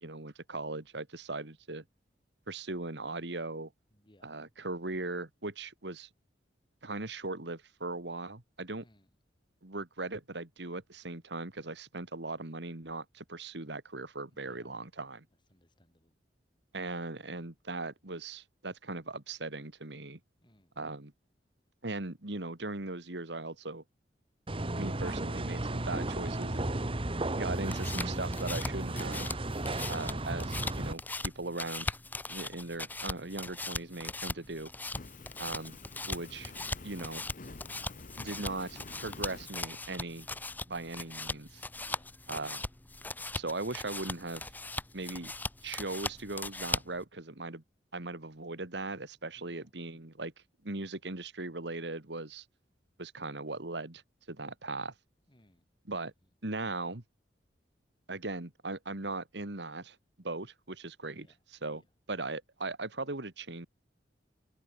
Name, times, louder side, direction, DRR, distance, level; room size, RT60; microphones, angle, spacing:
voice 1, 0.0-1.8 2.5-3.7 4.2-6.1 6.8-8.8 9.6-15.2 16.7-20.2 20.8-21.1 21.8-23.8 24.7-26.7 27.3-29.4 29.9-31.9 32.3-34.7 35.4-35.8 36.1-36.5 36.8-37.2 38.2-40.3 40.7-41.6 42.3-42.6 43.3-44.5 44.9-45.3 45.6-47.6 47.9-50.3 50.6-52.5 53.0-54.0 54.3-54.9 55.8-56.1 56.4-57.0 58.1-61.3 61.6-61.8 62.1-63.7, right 2 dB, 70° right, 2.2 m, -39 dB
voice 2, 3.9-4.4 8.8-9.1 14.3-14.8 15.5-16.2 20.4-20.7 35.0-35.5 41.7-42.5 49.3-50.1 55.3-55.7 61.0-61.4 61.7-61.8, left 1 dB, 25° left, 6.5 m, -65 dB
sound 1, 24.5-30.9, right 1 dB, 30° right, 1.5 m, -34 dB
sound 2, 27.5-47.0, left 2 dB, 10° left, 0.6 m, -40 dB
Fire, 34.9-39.5, left 3 dB, 50° left, 1.1 m, -49 dB
head